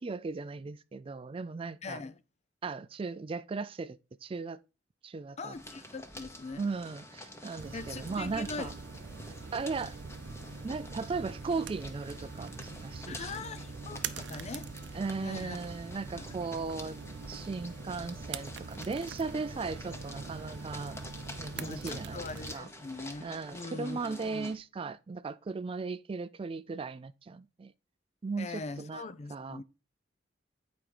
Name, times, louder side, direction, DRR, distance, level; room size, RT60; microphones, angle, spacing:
voice 1, 0.0-2.0 2.6-4.6 5.0-5.6 6.6-8.7 9.5-10.0 10.6-13.4 14.9-17.0 17.3-21.0 21.4-22.7 23.2-27.7 28.2-29.6, right 4 dB, 30° right, 0.3 m, -37 dB
voice 2, 1.8-2.2 5.4-6.7 7.7-8.7 13.1-14.7 15.2-15.6 15.9-16.2 21.6-24.5 28.4-29.6, left 3 dB, 35° left, 0.5 m, -42 dB
sound 1, 5.5-24.5, left 1 dB, 15° left, 1.1 m, -48 dB
sound 2, 7.6-22.5, right 4 dB, 70° right, 0.6 m, -43 dB
8.8 x 5.1 x 4.7 m
head